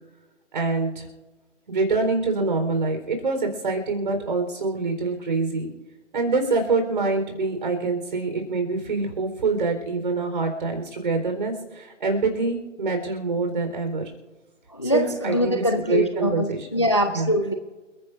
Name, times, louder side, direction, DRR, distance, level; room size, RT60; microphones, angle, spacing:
voice 1, 0.5-1.1 1.7-5.7 6.1-14.0 14.8-16.8 17.1-17.3, right 3 dB, 40° right, 5 dB, 4.3 m, -25 dB
voice 2, 14.7-17.5, equal, 25° left, 7 dB, 0.5 m, -23 dB
29.0 x 10.5 x 2.6 m, 1.3 s
figure-of-eight pair, 145°, 37 cm